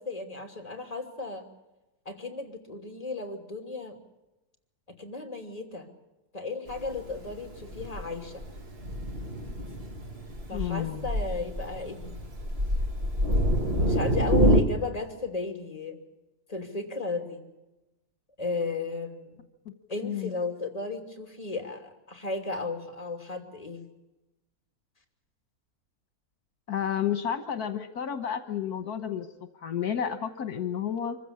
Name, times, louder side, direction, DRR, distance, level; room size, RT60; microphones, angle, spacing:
voice 1, 0.0-1.4 2.0-4.0 4.9-5.9 6.3-8.4 10.5-12.2 13.8-16.0 16.5-17.5 18.4-19.4 19.9-23.9, left 3 dB, 25° left, 5 dB, 3.1 m, -34 dB
Thunder, 6.7-14.6, equal, 40° right, 2.0 m, -27 dB
voice 2, 10.5-11.1 19.6-19.7 20.0-20.3 26.7-29.3 29.6-31.2, left 9 dB, 75° left, 9 dB, 1.7 m, -31 dB
25.0 x 15.5 x 8.5 m, 1.0 s
omnidirectional pair, 1.6 m